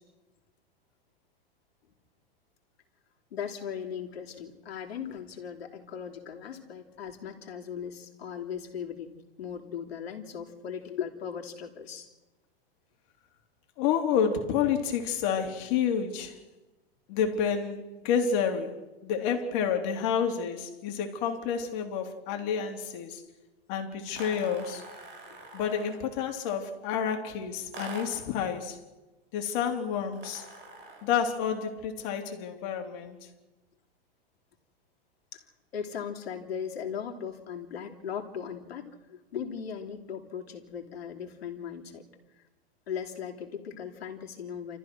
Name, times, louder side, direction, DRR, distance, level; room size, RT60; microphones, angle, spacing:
voice 1, 3.3-9.1 9.4-12.1 35.3-35.4 35.7-42.0 42.9-44.8, left 7 dB, 80° left, 2 dB, 3.3 m, -38 dB
voice 2, 13.8-16.4 17.1-23.2 23.7-24.8 25.5-28.8 29.3-30.5 31.0-33.2, left 7 dB, 50° left, 4 dB, 3.5 m, -29 dB
sound 1, 24.1-26.1 27.7-28.3 30.1-31.2, right 2 dB, 35° right, 6.6 m, -44 dB
29.5 x 14.0 x 6.3 m, 1.1 s
hypercardioid pair, 120°, 30 cm